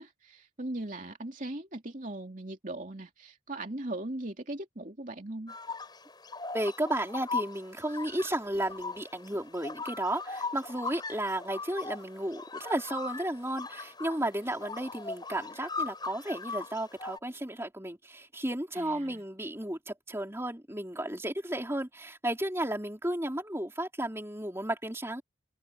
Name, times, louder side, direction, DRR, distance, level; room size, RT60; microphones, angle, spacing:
voice 1, 0.0-5.5 18.7-19.2, right 1 dB, 40° right, 2.9 m, -39 dB
sound 1, 5.5-17.2, left 4 dB, 20° left, 7.2 m, -39 dB
voice 2, 6.5-25.2, right 1 dB, 15° right, 3.3 m, -33 dB
head